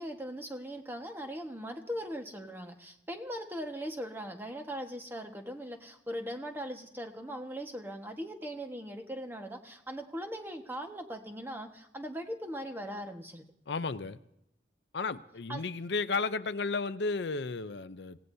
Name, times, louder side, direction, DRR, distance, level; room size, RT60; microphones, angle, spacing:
voice 1, 0.0-13.4 15.5-15.6, equal, 10° right, 4 dB, 1.4 m, -40 dB
voice 2, 13.7-14.2 14.9-18.2, left 4 dB, 70° left, 12 dB, 0.6 m, -33 dB
26.5 x 17.5 x 2.8 m, 0.79 s
head